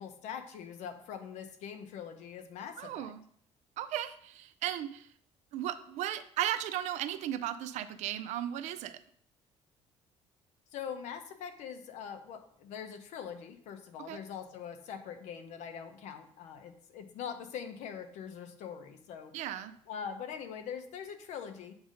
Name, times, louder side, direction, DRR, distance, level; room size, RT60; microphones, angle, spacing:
voice 1, 0.0-3.1 10.7-19.3 19.9-21.7, left 7 dB, 75° left, 8 dB, 0.8 m, -43 dB
voice 2, 2.8-3.2 3.8-5.1 5.5-9.0 14.1-14.2 19.3-19.7, right 12 dB, 75° right, 11 dB, 0.4 m, -35 dB
7.8 x 2.7 x 5.0 m, 0.63 s
cardioid pair, 140°, 12 cm